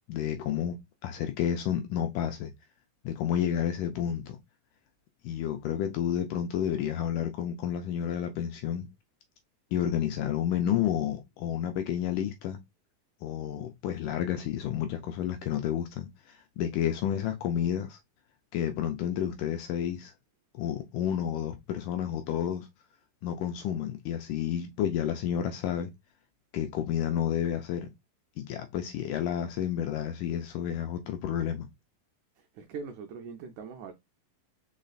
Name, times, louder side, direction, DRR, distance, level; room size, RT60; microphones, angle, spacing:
voice 1, 0.1-0.8 1.0-2.5 3.1-4.4 5.2-8.9 9.7-12.6 13.2-18.0 18.5-20.1 20.5-22.7 23.2-25.9 26.5-27.9 28.4-31.7, left 10 dB, 80° left, 1.9 m, -30 dB
voice 2, 32.4-33.9, right 5 dB, 85° right, 1.7 m, -41 dB
5.1 x 4.2 x 2.3 m
omnidirectional pair, 4.2 m